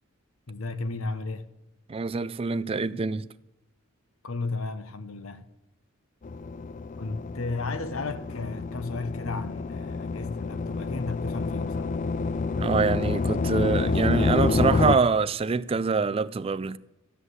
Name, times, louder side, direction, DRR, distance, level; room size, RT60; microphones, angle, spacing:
voice 1, 0.5-1.5 4.2-5.5 7.0-11.9, left 3 dB, 85° left, 1.0 m, -34 dB
voice 2, 1.9-3.2 12.6-16.8, right 4 dB, 25° right, 0.4 m, -25 dB
sound 1, 6.2-15.0, left 3 dB, 35° left, 0.4 m, -28 dB
13.0 x 8.2 x 8.0 m
head